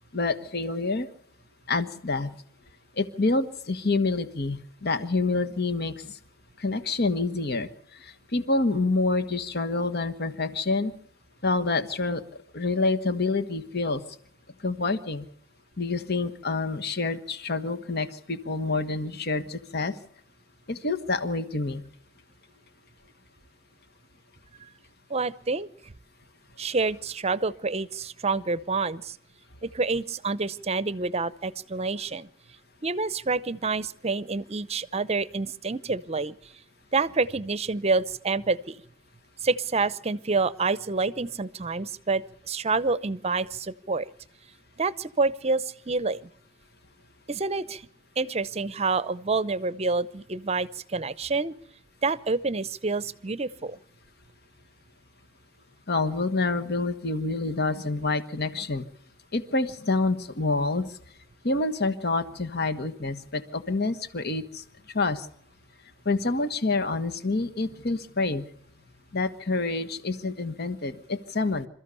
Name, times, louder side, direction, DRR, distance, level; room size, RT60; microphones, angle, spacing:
voice 1, 0.1-1.1 1.7-2.3 3.0-6.0 6.6-7.7 8.3-10.9 11.4-12.2 12.5-14.0 14.6-15.3 15.8-19.9 20.7-21.8 55.9-58.8 59.3-60.9 61.4-64.6 64.9-65.3 66.0-68.4 69.1-71.7, left 3 dB, 55° left, 10 dB, 1.3 m, -27 dB
voice 2, 25.1-25.9 26.6-29.2 29.6-32.3 32.8-36.3 36.9-38.8 39.4-44.1 44.8-46.3 47.3-47.9 48.2-51.5 52.0-53.8, right 3 dB, 30° right, 17 dB, 0.7 m, -28 dB
27.5 x 14.0 x 6.9 m, 0.68 s
head